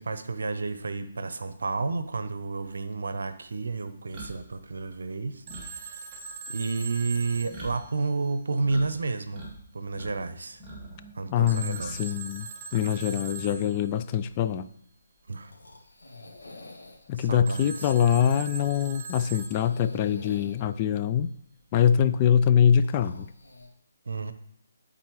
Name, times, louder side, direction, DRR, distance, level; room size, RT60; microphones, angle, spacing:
voice 1, 0.0-6.1 6.5-9.4 9.7-10.6 11.1-12.2 15.3-15.5 17.1-17.9 24.1-24.3, right 3 dB, 70° right, 11 dB, 0.7 m, -31 dB
sound 1, 2.7-8.9 9.2-10.2 10.5-12.2 12.5-12.7 14.1-14.7, right 2 dB, 10° right, 2.2 m, -45 dB
Telephone, 5.5-8.6 11.5-14.0 17.5-20.1, right 4 dB, 35° right, 0.6 m, -41 dB
voice 2, 11.3-14.7 17.1-21.3 21.7-23.3, left 8 dB, 30° left, 11 dB, 0.3 m, -24 dB
sound 2, 14.3-23.7, left 2 dB, 75° left, 1.6 m, -51 dB
12.0 x 4.1 x 3.1 m, 0.66 s
figure-of-eight pair, 145°, 0 cm